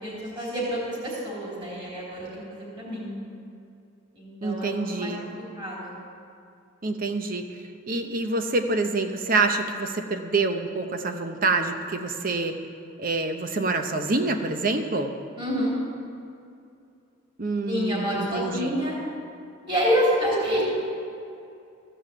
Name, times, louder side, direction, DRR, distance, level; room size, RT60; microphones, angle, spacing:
voice 1, 0.0-3.1 4.1-5.3 5.6-6.0 15.4-15.7 17.7-19.0 19.7-20.6, equal, 25° right, -6 dB, 3.5 m, -27 dB
voice 2, 4.4-5.2 6.8-7.5 7.9-12.6 13.0-15.1 17.4-18.8, right 3 dB, 45° right, 6 dB, 0.8 m, -26 dB
15.0 x 5.5 x 7.6 m, 2.5 s
head